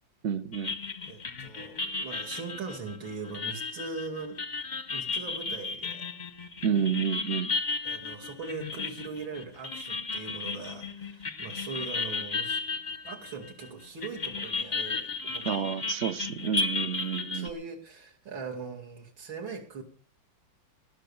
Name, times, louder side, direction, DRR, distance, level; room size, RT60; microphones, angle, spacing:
voice 1, 0.2-0.7 6.6-7.5 15.4-17.5, right 7 dB, 55° right, 13 dB, 0.8 m, -29 dB
sound 1, 0.5-13.7 14.0-17.5, left 4 dB, 40° left, 0.7 m, -34 dB
voice 2, 1.1-4.4 4.9-6.1 7.8-12.6 13.0-15.6 16.4-16.5 17.3-19.8, right 4 dB, 75° right, 1 dB, 3.2 m, -40 dB
19.0 x 6.6 x 7.0 m, 0.42 s
omnidirectional pair, 2.1 m